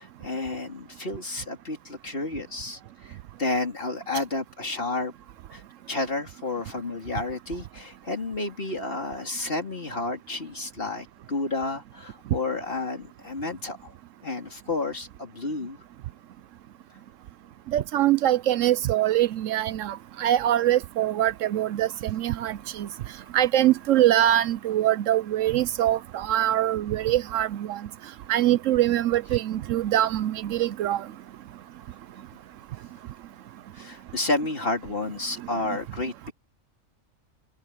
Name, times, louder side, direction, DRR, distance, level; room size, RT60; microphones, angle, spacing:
voice 1, 0.0-5.1 5.5-5.6 5.9-13.9 14.2-15.8 33.7-36.3, left 2 dB, 45° left, 3.6 m, -31 dB
voice 2, 17.7-22.9 23.3-27.8 28.3-31.0, right 13 dB, 75° right, 0.9 m, -23 dB
omnidirectional pair, 1.4 m